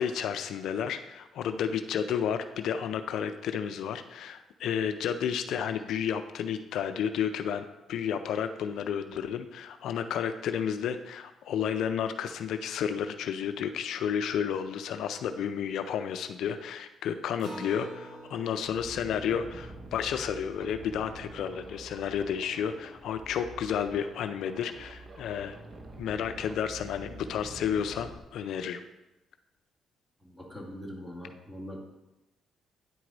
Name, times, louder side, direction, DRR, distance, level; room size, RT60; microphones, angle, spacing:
voice 1, 0.0-25.6 26.0-28.8, left 8 dB, 75° left, 9 dB, 0.4 m, -31 dB
Acoustic guitar, 17.4-22.3, right 1 dB, 70° right, 2.6 m, -48 dB
sound 1, 18.3-28.2, right 2 dB, 40° right, 0.8 m, -47 dB
voice 2, 30.2-31.8, equal, 5° right, 0 dB, 1.7 m, -42 dB
9.4 x 4.6 x 3.9 m, 0.99 s
cardioid pair, 90°, 0 cm